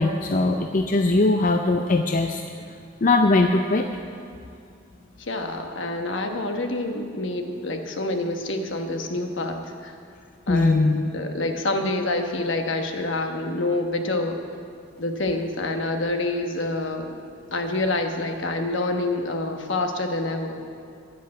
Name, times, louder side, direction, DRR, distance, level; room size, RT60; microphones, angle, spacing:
voice 1, 0.0-2.7 3.0-3.9 10.5-11.0, left 2 dB, 40° left, 4 dB, 0.5 m, -20 dB
voice 2, 5.2-9.9 10.5-14.4 15.0-17.2 17.5-20.6, left 2 dB, 65° left, 4 dB, 1.2 m, -27 dB
10.5 x 10.5 x 7.5 m, 2.4 s
head